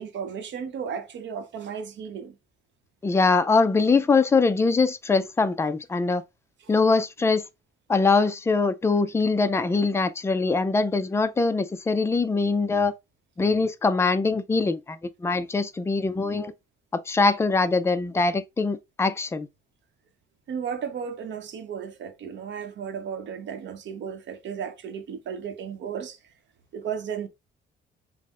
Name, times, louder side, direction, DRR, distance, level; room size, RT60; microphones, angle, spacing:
voice 1, 0.0-2.4 6.6-6.7 20.5-26.2 26.7-27.3, right 7 dB, 65° right, 0.8 m, -34 dB
voice 2, 3.0-6.2 6.7-7.4 7.9-12.9 13.4-16.5 16.9-19.5, left 4 dB, 15° left, 0.3 m, -23 dB
5.4 x 2.0 x 3.5 m
cardioid pair, 155°, 20 cm